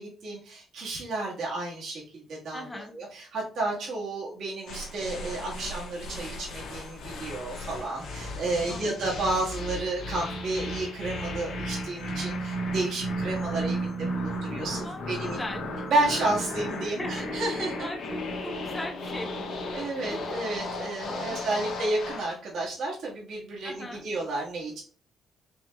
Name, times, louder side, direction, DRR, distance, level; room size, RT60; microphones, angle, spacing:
voice 1, 0.0-15.4 15.9-17.9 19.7-24.8, right 2 dB, 70° right, -6 dB, 1.7 m, -31 dB
voice 2, 2.5-2.9 8.7-8.9 14.8-15.6 16.8-17.2 17.8-19.5 20.1-20.2 21.0-21.6 23.6-24.0, left 1 dB, 20° left, 2 dB, 1.1 m, -39 dB
sound 1, 4.7-22.3, equal, 80° left, 1.3 m, -34 dB
5.3 x 3.2 x 2.3 m, 0.43 s
cardioid pair, 90°, 0 cm